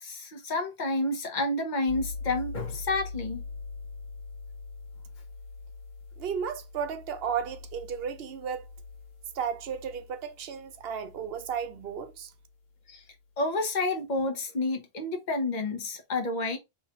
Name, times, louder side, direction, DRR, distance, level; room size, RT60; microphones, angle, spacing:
voice 1, 0.0-3.4 12.9-13.0 13.4-16.6, left 2 dB, 45° left, 1.0 m, -30 dB
sound 1, 1.9-12.5, left 3 dB, 65° left, 1.2 m, -43 dB
voice 2, 6.2-8.7 9.3-12.3, right 7 dB, 70° right, 0.8 m, -34 dB
3.2 x 3.0 x 3.5 m
omnidirectional pair, 1.1 m